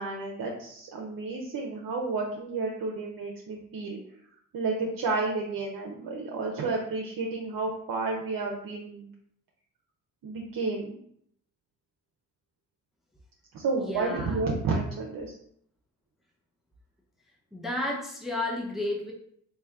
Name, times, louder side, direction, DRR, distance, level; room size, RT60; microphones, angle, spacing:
voice 1, 0.0-4.0 4.5-9.1 10.2-11.0 13.5-15.4, right 3 dB, 55° right, -1 dB, 0.7 m, -31 dB
voice 2, 13.8-14.4 17.5-19.1, left 2 dB, ahead, -2 dB, 0.8 m, -32 dB
3.1 x 2.7 x 3.6 m, 0.67 s
supercardioid pair, 55°, 40 cm